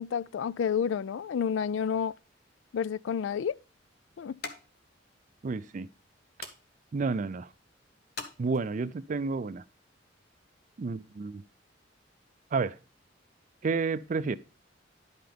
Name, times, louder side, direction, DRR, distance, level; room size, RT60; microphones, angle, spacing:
voice 1, 0.0-2.1 2.7-3.6 4.2-4.4, left 7 dB, 75° left, 0.3 m, -30 dB
sound 1, 2.7-9.0, left 4 dB, 55° left, 1.4 m, -48 dB
voice 2, 5.4-5.9 6.4-6.5 6.9-7.5 8.4-9.6 10.8-11.4 12.5-12.8 13.6-14.4, right 4 dB, 40° right, 0.4 m, -30 dB
11.0 x 5.7 x 3.4 m
head